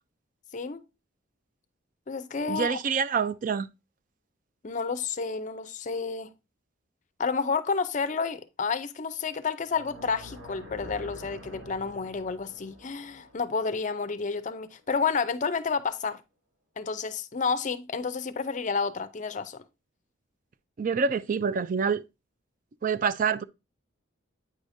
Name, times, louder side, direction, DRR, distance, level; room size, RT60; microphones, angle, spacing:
voice 1, 0.5-0.8 2.1-2.8 4.6-6.3 7.2-16.2 16.8-19.6, left 5 dB, 40° left, 0.5 m, -30 dB
voice 2, 2.5-3.7 20.8-22.0 22.8-23.4, right 6 dB, 40° right, 0.3 m, -26 dB
sound 1, 9.6-14.8, left 1 dB, 75° right, 2.5 m, -47 dB
8.7 x 4.9 x 2.6 m
head